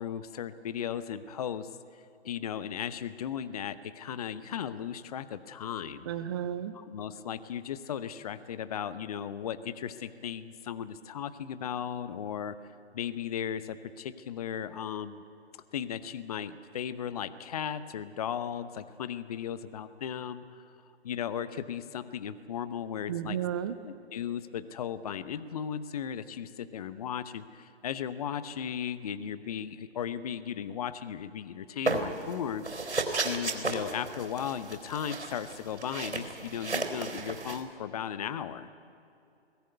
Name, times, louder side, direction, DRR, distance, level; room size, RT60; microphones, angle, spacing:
voice 1, 0.0-1.7 2.2-6.1 6.7-12.6 12.9-15.2 15.7-20.6 21.0-23.4 23.8-33.0 33.2-38.7, left 8 dB, 35° left, 13 dB, 0.9 m, -36 dB
voice 2, 6.1-6.7 23.1-23.7, right 10 dB, 25° right, 12 dB, 0.7 m, -32 dB
sound 1, 31.9-32.3 32.6-37.6, right 3 dB, 85° right, 4.0 m, -33 dB
22.5 x 18.5 x 9.4 m, 2.7 s
figure-of-eight pair, 135°, 33 cm